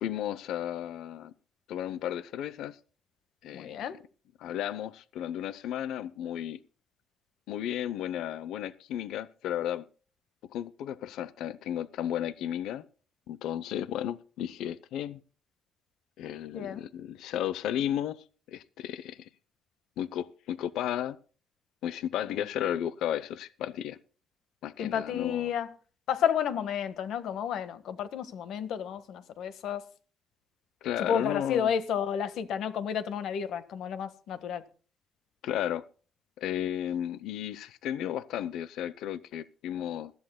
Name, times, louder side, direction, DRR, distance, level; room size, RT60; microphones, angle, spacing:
voice 1, 0.0-1.3 1.7-2.8 3.4-3.7 4.4-6.6 7.5-9.8 10.5-12.9 13.3-15.2 16.2-19.3 20.0-21.2 21.8-24.0 24.6-25.5 30.8-31.7 35.4-35.9 36.4-40.1, left 11 dB, 90° left, 0.7 m, -34 dB
voice 2, 3.5-4.0 16.5-16.8 22.2-22.3 24.8-25.7 26.1-29.8 31.0-34.6, left 8 dB, 70° left, 1.4 m, -31 dB
20.5 x 13.5 x 2.2 m
cardioid pair, 165°, 0 cm